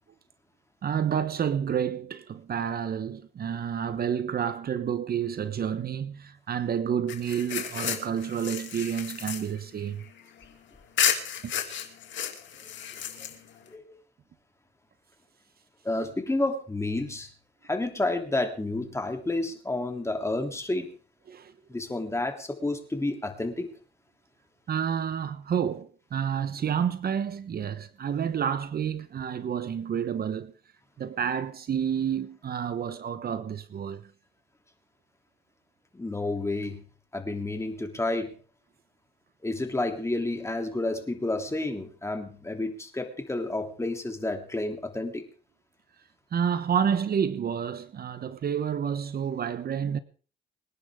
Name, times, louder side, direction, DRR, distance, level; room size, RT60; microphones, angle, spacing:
voice 1, 0.8-10.0 11.4-11.5 21.3-21.5 24.7-30.5 31.0-34.1 46.3-50.0, right 8 dB, 50° right, 1.1 m, -29 dB
sound 1, 7.1-10.5 11.0-13.7, left 9 dB, 70° left, 2.7 m, -32 dB
voice 2, 15.8-17.3 17.6-20.9 21.7-23.7 35.9-36.8 37.1-38.3 39.4-45.2, left 2 dB, 15° left, 3.2 m, -30 dB
26.0 x 10.5 x 3.7 m
cardioid pair, 90°, 20 cm